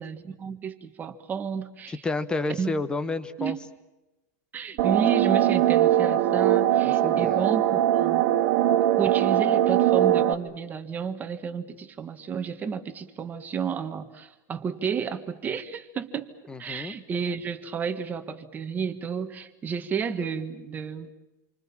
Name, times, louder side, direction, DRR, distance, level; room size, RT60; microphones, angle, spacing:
voice 1, 0.0-2.0 2.6-2.7 3.4-3.6 4.5-8.2 9.0-16.3 16.6-21.1, right 6 dB, 20° right, 8 dB, 1.6 m, -31 dB
voice 2, 1.9-3.6 6.8-7.4 16.5-16.9, left 3 dB, 10° left, 13 dB, 1.2 m, -30 dB
sound 1, 4.8-10.3, right 12 dB, 55° right, 1.9 m, -21 dB
28.0 x 25.0 x 7.2 m, 1.0 s
supercardioid pair, 160°, 9 cm